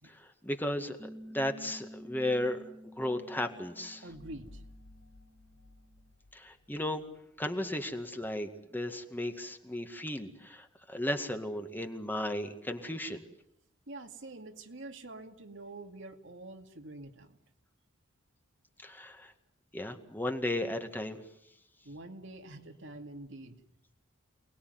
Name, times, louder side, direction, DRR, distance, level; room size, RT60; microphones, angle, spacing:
voice 1, 0.0-4.0 6.3-7.0 7.4-13.2 18.8-19.3 19.7-21.2, left 1 dB, 10° left, 6 dB, 2.0 m, -35 dB
Piano, 1.0-6.1, equal, 5° right, 2.0 m, -51 dB
voice 2, 4.0-4.6 13.9-17.4 21.8-23.6, right 2 dB, 65° right, 5 dB, 2.4 m, -46 dB
sound 1, 4.1-7.5, left 1 dB, 90° left, 4.7 m, -56 dB
28.5 x 20.0 x 9.5 m, 0.74 s
head